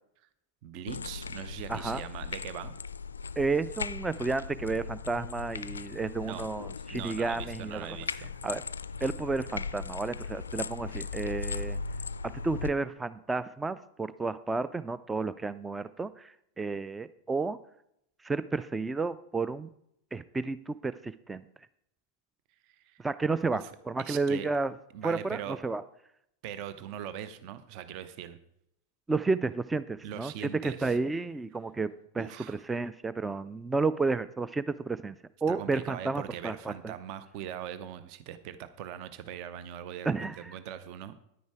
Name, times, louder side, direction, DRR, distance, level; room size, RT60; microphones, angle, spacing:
voice 1, 0.6-2.8 6.2-6.4 6.9-8.3 22.6-23.0 23.5-24.5 24.9-25.6 26.4-28.4 30.0-31.0 32.2-32.6 35.5-41.1, right 10 dB, 45° right, 13 dB, 0.7 m, -41 dB
sound 1, 0.9-12.7, left 5 dB, 75° left, 0.3 m, -38 dB
voice 2, 1.7-2.0 3.4-8.0 8.4-8.6 9.0-11.8 12.4-17.6 18.2-19.7 20.1-21.4 23.0-24.7 25.0-25.8 29.1-35.1 35.4-36.5 36.8-36.9 40.1-40.5, right 3 dB, 10° right, 15 dB, 0.3 m, -31 dB
10.5 x 9.4 x 4.7 m, 0.76 s
figure-of-eight pair, 90°, 0 cm